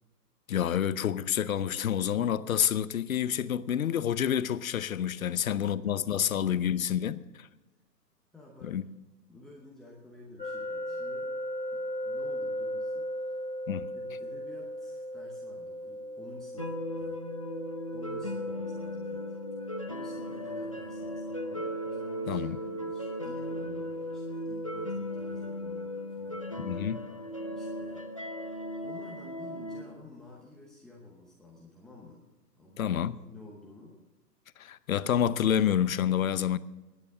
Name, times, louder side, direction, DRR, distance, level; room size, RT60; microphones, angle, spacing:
voice 1, 0.5-7.5 8.6-8.9 13.7-13.9 22.3-22.6 26.6-27.0 32.8-33.2 34.6-36.6, left 9 dB, 55° left, 0.8 m, -28 dB
voice 2, 8.3-8.8 9.3-11.3 11.7-13.3 13.9-17.2 17.9-19.2 19.6-26.8 27.5-28.1 28.8-32.2 32.6-34.0, left 2 dB, ahead, 0.9 m, -52 dB
sound 1, 10.4-23.3, equal, 85° left, 2.8 m, -39 dB
sound 2, 16.6-29.8, left 1 dB, 25° left, 0.4 m, -36 dB
21.5 x 9.7 x 3.7 m
figure-of-eight pair, 135°, 49 cm